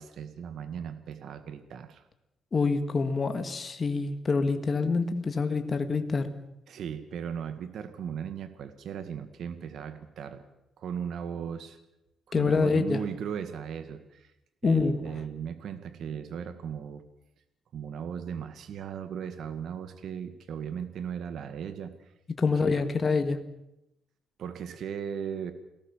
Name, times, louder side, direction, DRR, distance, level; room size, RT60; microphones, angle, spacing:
voice 1, 0.0-2.1 6.7-10.4 10.8-11.8 12.4-14.3 14.6-17.0 17.7-22.1 22.6-22.9 24.4-25.5, right 8 dB, 70° right, 10 dB, 1.9 m, -37 dB
voice 2, 2.5-6.3 12.3-13.0 14.6-15.0 22.4-23.4, left 4 dB, 30° left, 7 dB, 2.1 m, -26 dB
29.0 x 18.0 x 7.4 m, 0.88 s
cardioid pair, 125°, 0 cm